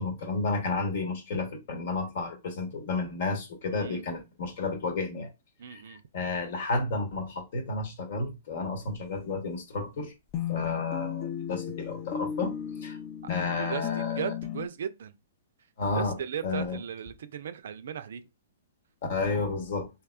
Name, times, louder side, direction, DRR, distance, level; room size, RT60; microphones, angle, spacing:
voice 1, 0.0-5.3 5.7-10.1 10.5-12.5 12.8-13.0 13.3-14.3 15.8-16.8 19.1-19.9, left 3 dB, 60° left, 1.0 m, -32 dB
voice 2, 5.6-6.0 13.5-15.1 15.9-18.2, right 8 dB, 70° right, 0.4 m, -37 dB
sound 1, 10.3-14.7, left 10 dB, 35° left, 0.4 m, -34 dB
3.5 x 2.7 x 2.3 m
hypercardioid pair, 130°, 0 cm